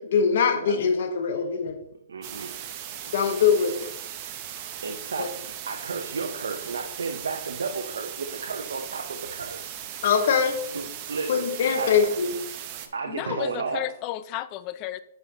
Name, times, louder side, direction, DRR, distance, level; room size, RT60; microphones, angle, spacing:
voice 1, 0.0-1.8 3.1-3.9 5.2-5.3 10.0-10.6 11.3-12.3, left 6 dB, 65° left, 0.9 m, -22 dB
voice 2, 2.1-2.6 4.7-9.8 10.7-12.1 12.9-13.8, right 4 dB, 85° right, 0.7 m, -33 dB
sound 1, 2.2-12.9, right 10 dB, 35° right, 0.7 m, -38 dB
voice 3, 13.1-15.0, left 14 dB, 35° left, 0.3 m, -32 dB
7.8 x 5.6 x 2.8 m
hypercardioid pair, 140°, 0 cm